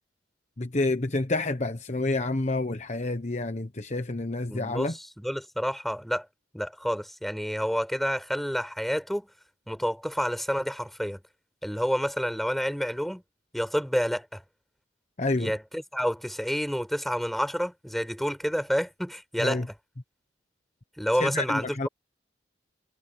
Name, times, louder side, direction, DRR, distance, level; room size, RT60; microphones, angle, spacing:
voice 1, 0.6-5.0 15.2-15.5 19.4-19.7 21.2-21.9, left 2 dB, 40° left, 1.1 m, -28 dB
voice 2, 4.5-6.3 6.5-9.3 9.7-11.2 11.6-13.2 13.5-14.4 15.3-19.6 21.0-21.9, equal, ahead, 5.1 m, -29 dB
head